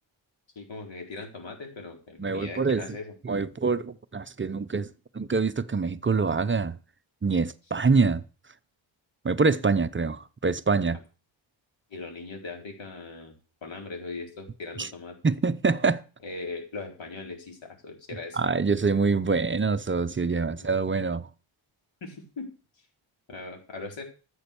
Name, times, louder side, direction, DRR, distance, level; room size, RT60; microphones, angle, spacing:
voice 1, 0.6-3.1 11.9-15.2 16.2-18.4 20.5-20.7 22.0-22.5 23.3-24.0, left 3 dB, 65° left, 4.4 m, -39 dB
voice 2, 2.2-2.8 3.2-4.9 5.1-6.8 7.2-8.2 9.2-11.0 14.8-14.9 15.2-16.0 18.3-21.3, right 4 dB, 25° right, 0.6 m, -25 dB
14.0 x 8.0 x 6.8 m
wide cardioid pair, 165°, 49 cm